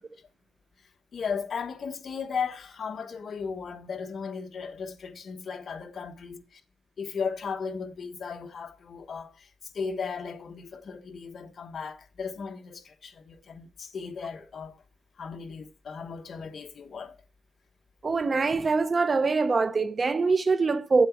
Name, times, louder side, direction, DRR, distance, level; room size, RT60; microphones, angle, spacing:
voice 1, 1.1-6.6 7.0-14.8 15.2-17.2, left 5 dB, 55° left, 1.3 m, -36 dB
voice 2, 18.0-21.1, right 4 dB, 35° right, 0.9 m, -24 dB
9.2 x 7.9 x 4.5 m
cardioid pair, 105°, 0 cm